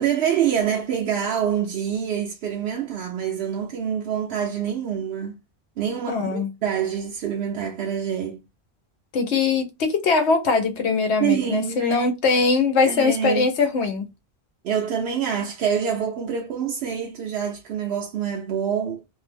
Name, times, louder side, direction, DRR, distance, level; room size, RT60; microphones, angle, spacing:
voice 1, 0.0-5.4 5.8-8.4 11.2-12.1 12.8-13.5 14.6-19.0, right 8 dB, 70° right, 0.8 m, -26 dB
voice 2, 6.1-6.5 9.1-14.1, left 4 dB, 85° left, 1.0 m, -21 dB
2.6 x 2.1 x 3.2 m
omnidirectional pair, 1.1 m